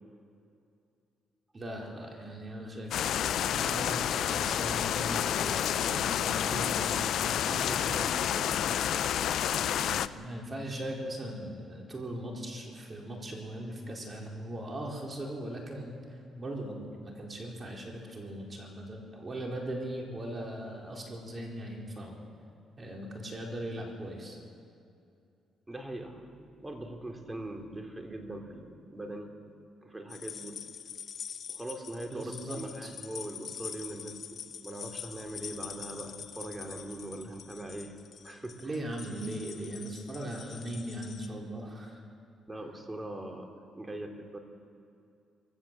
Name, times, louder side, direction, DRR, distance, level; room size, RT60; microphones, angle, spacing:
voice 1, 1.5-8.8 9.5-22.2 22.8-24.4 32.1-32.9 38.6-42.0, right 1 dB, 35° right, 0 dB, 4.3 m, -39 dB
sound 1, 2.9-10.1, left 10 dB, 75° left, 0.6 m, -29 dB
voice 2, 25.7-29.5 29.8-30.6 31.5-37.9 38.2-38.7 42.5-43.5 43.7-44.4, right 1 dB, 15° right, 3 dB, 3.0 m, -41 dB
sound 2, 30.1-41.3, left 8 dB, 60° left, 1.2 m, -44 dB
22.5 x 16.0 x 7.6 m, 2.6 s
cardioid pair, 85°, 0 cm